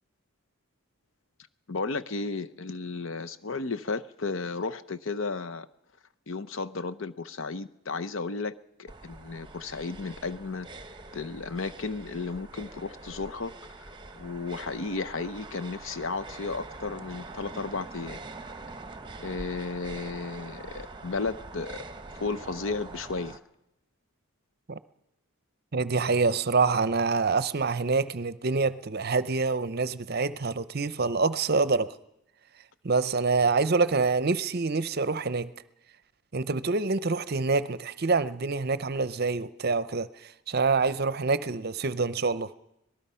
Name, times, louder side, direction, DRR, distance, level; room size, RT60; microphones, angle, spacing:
voice 1, 1.7-5.7 6.3-10.7 11.1-13.5 14.2-18.2 19.2-21.8 22.2-23.4, left 3 dB, 60° left, 0.8 m, -34 dB
sound 1, 8.9-23.4, right 3 dB, 20° right, 1.1 m, -44 dB
voice 2, 25.7-32.0 32.8-35.5 36.3-42.5, right 4 dB, 45° right, 0.7 m, -26 dB
25.5 x 19.0 x 5.6 m
head